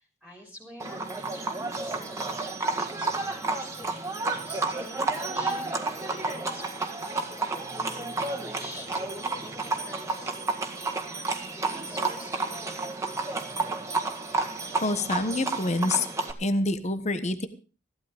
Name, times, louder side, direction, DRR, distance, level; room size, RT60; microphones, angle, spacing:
voice 1, 0.0-12.7, left 1 dB, ahead, 1 dB, 3.2 m, -47 dB
Livestock farm animals working animals, 0.8-16.3, right 3 dB, 15° right, 1.8 m, -31 dB
voice 2, 14.8-16.1 16.4-17.5, left 2 dB, 40° left, 11 dB, 1.2 m, -26 dB
15.5 x 12.0 x 5.1 m, 0.35 s
head